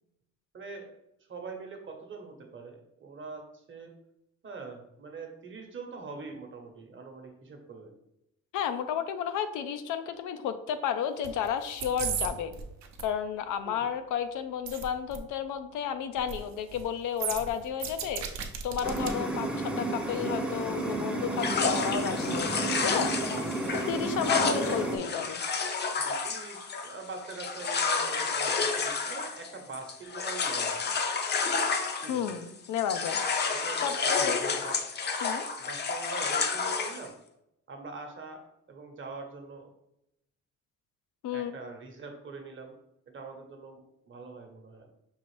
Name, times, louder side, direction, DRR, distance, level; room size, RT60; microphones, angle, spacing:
voice 1, 0.5-1.0 1.3-3.9 4.4-7.9 13.6-13.9 23.9-24.7 25.9-31.0 32.0-32.3 33.5-34.9 35.6-37.1 37.7-38.4 38.7-39.7 41.3-42.7 43.1-44.9, right 4 dB, 40° right, 3 dB, 0.9 m, -43 dB
voice 2, 8.5-12.5 13.0-23.1 23.9-25.4 32.1-33.2 33.8-34.4 35.2-35.5 41.2-41.5, left 8 dB, 85° left, 10 dB, 0.5 m, -32 dB
sound 1, 11.2-11.5 11.7-12.3 12.5-13.0 14.7-14.8 15.1-15.2 16.2-16.4 16.7-16.8 17.2-19.1 19.5-19.6, right 8 dB, 65° right, 0.7 m, -34 dB
sound 2, 18.8-25.0, right 2 dB, 5° right, 0.7 m, -32 dB
sound 3, 21.4-32.5 32.8-37.1, left 5 dB, 35° left, 0.5 m, -30 dB
5.5 x 2.5 x 3.2 m, 0.82 s
cardioid pair, 90°, 30 cm